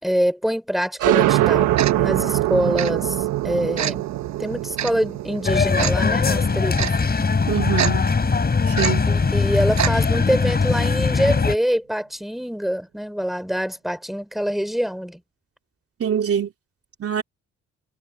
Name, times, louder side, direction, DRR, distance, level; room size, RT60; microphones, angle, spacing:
voice 1, 0.0-1.7 2.0-4.1 4.4-6.9 9.1-15.2, equal, ahead, 5.3 m, -25 dB
sound 1, 1.0-8.3, right 15 dB, 85° right, 1.3 m, -23 dB
Tick-tock, 1.8-1.9 2.8-2.9 3.8-3.9 4.8-4.9 5.8-5.9 6.8-6.9 7.8-7.9 8.8-8.9 9.8-9.9 10.2-10.3, right 10 dB, 65° right, 7.9 m, -24 dB
sound 2, 5.4-11.5, left 4 dB, 30° left, 4.8 m, -20 dB
voice 2, 7.5-8.1 8.7-9.1 16.0-16.5 17.0-17.2, right 8 dB, 50° right, 3.0 m, -23 dB
cardioid pair, 90°, 30 cm